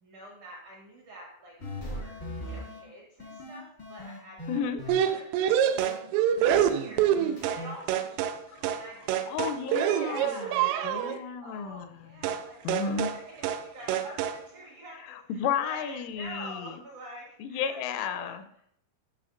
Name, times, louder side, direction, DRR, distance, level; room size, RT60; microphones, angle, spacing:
voice 1, 0.0-4.7 5.0-9.3 9.9-18.3, right 1 dB, 75° right, -3 dB, 1.8 m, -46 dB
sound 1, 1.6-2.8 3.2-5.0 5.8-6.0 6.4-7.7, left 1 dB, 65° left, 0.6 m, -40 dB
voice 2, 4.5-4.8 8.5-8.7 9.3-10.5 10.8-12.1 12.6-13.1 15.0-16.8 17.4-18.4, left 7 dB, 85° left, 10 dB, 3.0 m, -33 dB
sound 2, 4.9-7.6 7.9-8.4 8.6-8.8 9.1-11.2 12.2-12.4 12.7-13.2 13.4-13.6 13.9-14.4, right 10 dB, 90° right, 3.1 m, -26 dB
12.5 x 6.2 x 2.5 m, 0.70 s
omnidirectional pair, 5.7 m